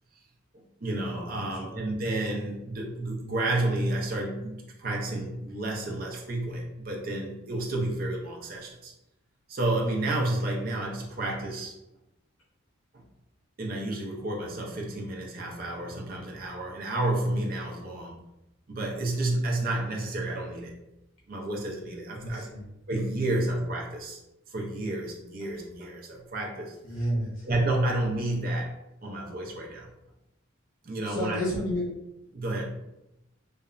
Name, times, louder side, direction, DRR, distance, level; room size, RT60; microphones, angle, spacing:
voice 1, 0.5-8.9 9.5-11.7 12.9-13.0 13.6-18.2 18.7-20.8 21.3-22.5 22.9-24.2 24.5-26.8 27.4-29.9 30.8-31.4 32.3-32.6, right 2 dB, 40° right, 0 dB, 0.4 m, -30 dB
voice 2, 22.2-22.6 26.8-27.5 31.0-31.9, equal, 70° left, -5 dB, 0.6 m, -30 dB
2.8 x 2.1 x 2.4 m, 0.89 s
head